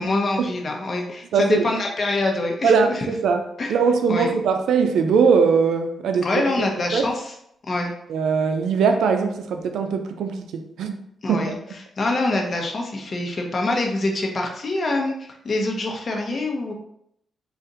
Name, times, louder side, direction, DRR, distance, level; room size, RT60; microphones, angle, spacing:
voice 1, 0.0-3.1 3.6-3.7 4.1-4.3 6.2-7.3 7.7-7.9 11.2-16.7, left 2 dB, 45° left, 1 dB, 0.9 m, -25 dB
voice 2, 1.3-1.6 2.6-6.3 6.6-6.7 6.9-7.0 8.1-11.0 11.3-11.6, right 5 dB, 90° right, 6 dB, 0.4 m, -21 dB
4.1 x 2.5 x 3.8 m, 0.74 s
cardioid pair, 95°, 0 cm